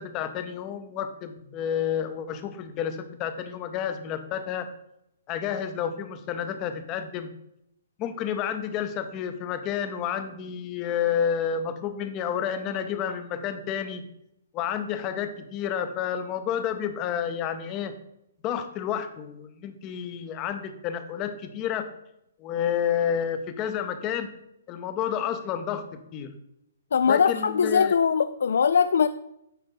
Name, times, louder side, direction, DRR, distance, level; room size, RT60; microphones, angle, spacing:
voice 1, 0.0-4.7 5.3-7.3 8.0-14.0 14.5-17.9 18.4-21.9 22.4-24.3 24.7-26.3 27.1-27.9, left 8 dB, 15° left, 0.6 m, -30 dB
voice 2, 26.9-29.1, left 6 dB, 65° left, 0.3 m, -21 dB
9.1 x 4.6 x 5.4 m
hypercardioid pair, 175°, 0 cm